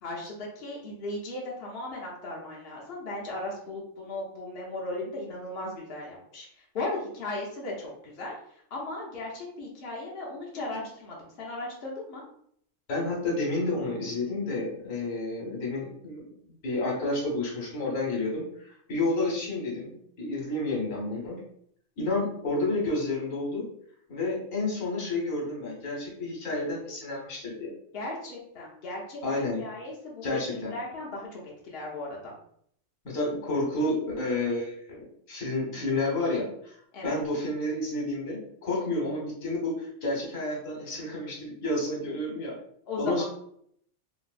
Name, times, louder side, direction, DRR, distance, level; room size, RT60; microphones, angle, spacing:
voice 1, 0.0-8.3 8.7-12.2 27.9-32.3 36.9-37.2 42.9-43.2, left 2 dB, 50° left, -4 dB, 0.9 m, -37 dB
voice 2, 12.9-16.2 16.6-21.4 22.0-23.6 24.1-27.7 29.2-29.6 30.2-30.7 33.0-35.0 35.3-36.8 37.0-42.6 43.0-43.2, left 2 dB, 75° left, -3 dB, 1.4 m, -30 dB
3.1 x 2.7 x 2.4 m, 0.67 s
omnidirectional pair, 1.4 m